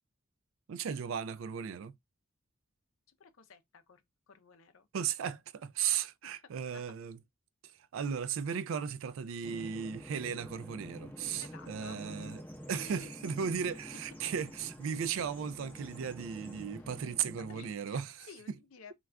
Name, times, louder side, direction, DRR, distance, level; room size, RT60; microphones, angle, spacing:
voice 1, 0.7-1.9 4.9-7.2 7.9-12.4 12.7-18.1, right 7 dB, 70° right, 0.3 m, -36 dB
voice 2, 3.2-4.9 6.2-6.4 6.7-6.9 11.4-12.0 12.7-13.1 17.4-18.9, left 5 dB, 75° left, 0.5 m, -53 dB
Bird vocalization bird call bird song, 9.4-17.8, equal, 10° left, 0.6 m, -48 dB
2.3 x 2.3 x 3.2 m
head